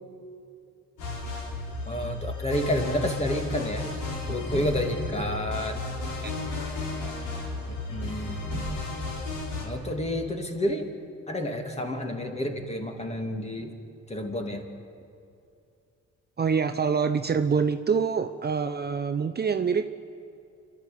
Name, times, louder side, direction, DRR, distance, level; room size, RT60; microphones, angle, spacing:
sound 1, 1.0-9.6, left 3 dB, 85° left, 4.2 m, -33 dB
voice 1, 1.9-3.9 4.3-5.8 7.7-8.4 9.6-10.9 11.3-13.7 14.1-14.6, equal, 20° left, 4 dB, 2.7 m, -30 dB
voice 2, 16.4-19.9, right 6 dB, 35° right, 8 dB, 0.8 m, -25 dB
27.0 x 12.0 x 8.5 m, 2.6 s
cardioid pair, 90°, 30 cm